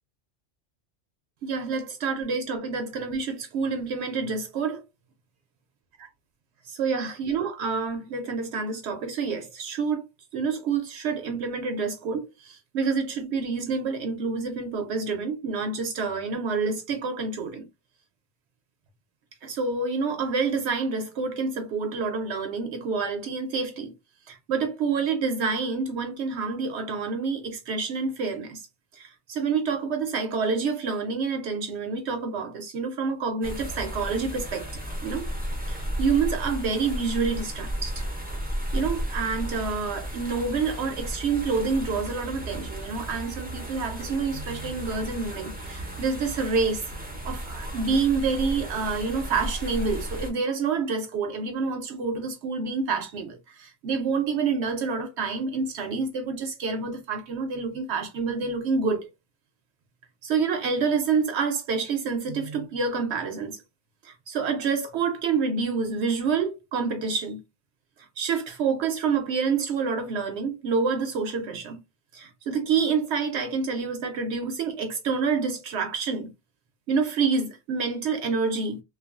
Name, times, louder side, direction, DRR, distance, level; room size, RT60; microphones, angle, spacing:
voice 1, 1.4-4.8 6.7-10.0 10.3-17.7 19.4-23.9 24.3-28.7 28.9-34.7 35.0-35.3 35.7-38.0 38.7-46.9 47.2-59.1 60.2-63.6 64.0-67.4 68.2-71.8 72.1-76.3 76.9-78.8, right 5 dB, 70° right, 0.8 m, -28 dB
sound 1, 33.4-50.3, equal, 10° right, 0.5 m, -34 dB
3.1 x 2.3 x 2.3 m
omnidirectional pair, 1.2 m